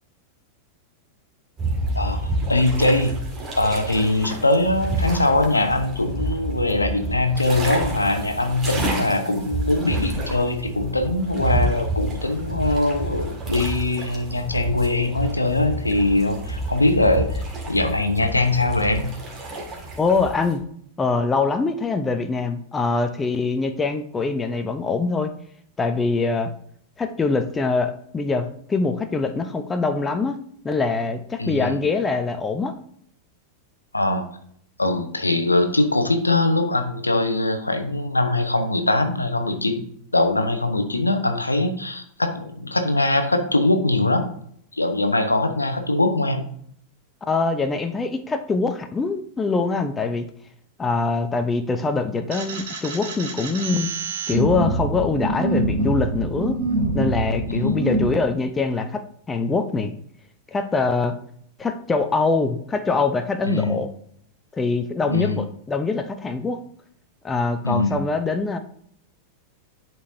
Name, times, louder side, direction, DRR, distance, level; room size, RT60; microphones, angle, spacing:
sound 1, 1.6-20.6, right 1 dB, 25° right, 2.0 m, -29 dB
voice 1, 1.9-3.2 3.6-19.2 31.4-31.8 33.9-34.3 34.8-39.8 40.1-44.3 44.7-46.4 57.5-57.8 63.4-63.8 65.1-65.4 67.6-68.0, left 2 dB, 80° left, 7 dB, 0.8 m, -22 dB
voice 2, 20.0-20.6 21.0-25.3 25.8-26.5 27.0-30.4 30.6-32.8 47.3-50.2 50.8-53.9 54.3-56.6 56.9-59.9 60.5-61.2 61.6-63.9 64.5-66.6 67.2-68.6, left 4 dB, 15° left, 8 dB, 0.6 m, -23 dB
sound 2, 52.3-58.1, right 2 dB, 55° right, 1.8 m, -25 dB
11.0 x 4.5 x 2.7 m, 0.65 s
figure-of-eight pair, 90°, 0 cm